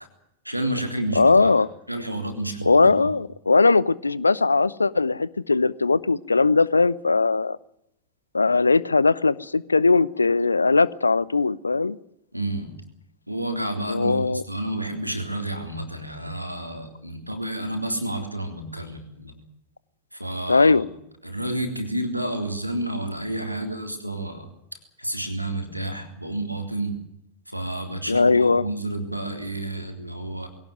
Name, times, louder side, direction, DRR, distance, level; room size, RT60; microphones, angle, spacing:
voice 1, 0.5-1.5 1.9-3.1 12.3-12.8 13.3-19.4 20.1-20.8 21.2-24.5 25.0-27.0 27.5-30.5, right 1 dB, 90° right, 6 dB, 3.6 m, -30 dB
voice 2, 1.2-1.7 2.7-7.6 8.3-12.0 13.9-14.4 20.5-20.9 28.1-28.6, left 3 dB, 80° left, 21 dB, 0.8 m, -19 dB
22.0 x 17.5 x 9.2 m, 0.80 s
figure-of-eight pair, 90°, 0 cm